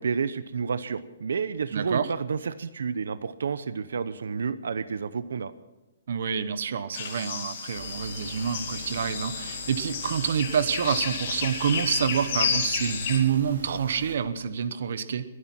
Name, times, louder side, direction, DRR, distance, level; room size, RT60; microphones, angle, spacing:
voice 1, 0.0-5.5, right 5 dB, 90° right, 14 dB, 0.8 m, -30 dB
voice 2, 1.7-2.1 6.1-15.2, right 7 dB, 55° right, 13 dB, 1.0 m, -27 dB
sound 1, 6.9-13.2, left 6 dB, 40° left, 2.5 m, -32 dB
sound 2, 7.7-14.2, right 1 dB, 70° right, 4.0 m, -43 dB
22.5 x 9.8 x 6.1 m, 1.1 s
hypercardioid pair, 175°, 0 cm